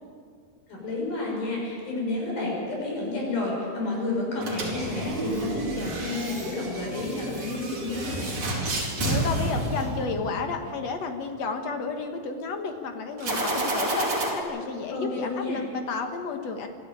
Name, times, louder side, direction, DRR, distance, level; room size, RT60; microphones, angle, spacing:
voice 1, 0.7-8.4 14.9-15.6, left 2 dB, 70° left, -2 dB, 8.1 m, -30 dB
sound 1, 4.4-10.5 13.2-14.3, right 2 dB, 45° right, 5.1 m, -30 dB
voice 2, 9.0-16.7, left 4 dB, 50° left, 5 dB, 2.4 m, -32 dB
26.0 x 14.0 x 8.8 m, 2.1 s
omnidirectional pair, 4.4 m